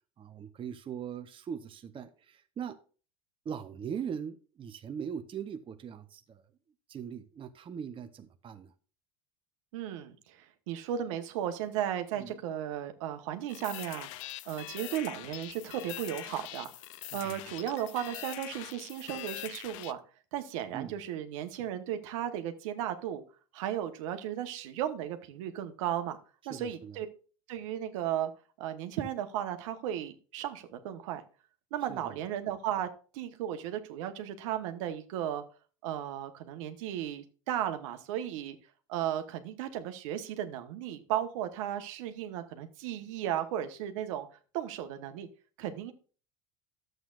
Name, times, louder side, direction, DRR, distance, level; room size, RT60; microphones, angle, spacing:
voice 1, 0.2-2.8 3.4-6.4 6.9-8.7 12.2-12.4 17.2-17.4 20.7-20.9 26.5-27.0 31.9-32.2, right 7 dB, 30° right, 0.8 m, -40 dB
voice 2, 9.7-14.1 14.5-16.7 17.1-20.0 20.3-23.2 23.5-26.2 26.4-27.1 27.5-28.3 28.6-31.2 31.7-32.9 33.1-35.4 35.8-38.6 38.9-44.3 44.5-45.3 45.6-45.9, right 11 dB, 75° right, 1.2 m, -35 dB
sound 1, 13.5-19.9, left 17 dB, 70° left, 0.5 m, -43 dB
11.5 x 7.9 x 2.5 m
hypercardioid pair, 85°, 17 cm